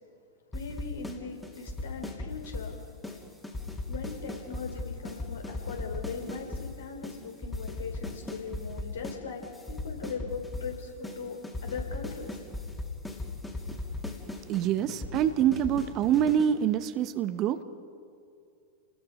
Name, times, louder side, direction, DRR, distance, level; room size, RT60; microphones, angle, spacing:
voice 1, 0.5-2.7 3.9-12.4, left 5 dB, 65° left, 3 dB, 3.4 m, -40 dB
sound 1, 0.5-1.2 1.4-2.7 3.0-3.2 3.4-6.7 7.0-7.2 7.4-9.2 9.4-10.7 11.0-11.2 11.4-16.5, left 2 dB, 10° left, 2.8 m, -37 dB
voice 2, 14.5-17.6, right 9 dB, 35° right, 12 dB, 0.9 m, -26 dB
29.5 x 20.5 x 5.2 m, 2.4 s
figure-of-eight pair, 90°, 0 cm